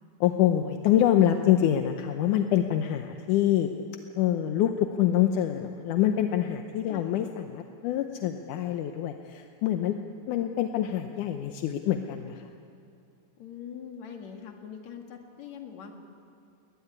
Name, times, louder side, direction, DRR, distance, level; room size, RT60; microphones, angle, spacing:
voice 1, 0.2-3.7 4.2-10.0 10.3-12.4, left 11 dB, 75° left, 6 dB, 2.1 m, -25 dB
voice 2, 6.9-7.3 13.4-15.9, left 7 dB, 55° left, 3 dB, 2.9 m, -42 dB
21.0 x 20.0 x 9.7 m, 2.4 s
omnidirectional pair, 4.2 m